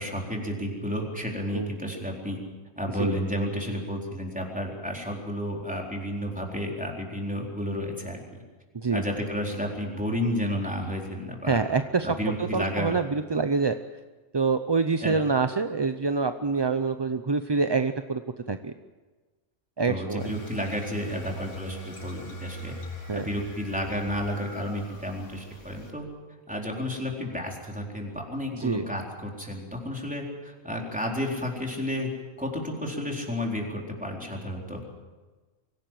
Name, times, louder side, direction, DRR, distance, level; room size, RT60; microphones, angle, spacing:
voice 1, 0.0-2.4 2.8-8.4 8.9-11.6 12.0-13.0 15.0-15.2 19.8-22.8 23.1-26.1 26.5-32.1 32.4-34.8, equal, 5° right, -1 dB, 4.2 m, -31 dB
voice 2, 11.5-12.1 12.5-13.7 14.3-18.2 18.5-18.7 19.8-20.2 23.1-23.2 28.6-28.9, right 4 dB, 30° right, 9 dB, 0.5 m, -26 dB
sound 1, 20.2-25.9, right 2 dB, 70° left, 3.2 m, -41 dB
24.5 x 17.0 x 7.7 m, 1.3 s
omnidirectional pair, 1.3 m